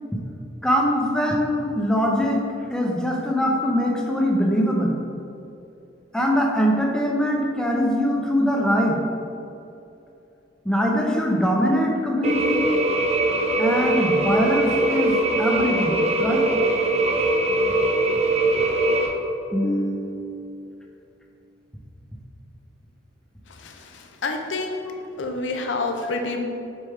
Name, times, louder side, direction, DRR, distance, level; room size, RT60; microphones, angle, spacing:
voice 1, 0.6-2.4 2.7-4.9 6.1-9.0 10.6-12.7 13.6-16.5 19.5-20.6, equal, 5° left, -1 dB, 0.7 m, -22 dB
sound 1, 12.2-19.1, right 2 dB, 35° right, 0.7 m, -21 dB
voice 2, 23.5-24.8 25.2-26.4, left 3 dB, 75° left, 4 dB, 0.6 m, -28 dB
6.6 x 4.4 x 3.6 m, 2.7 s
head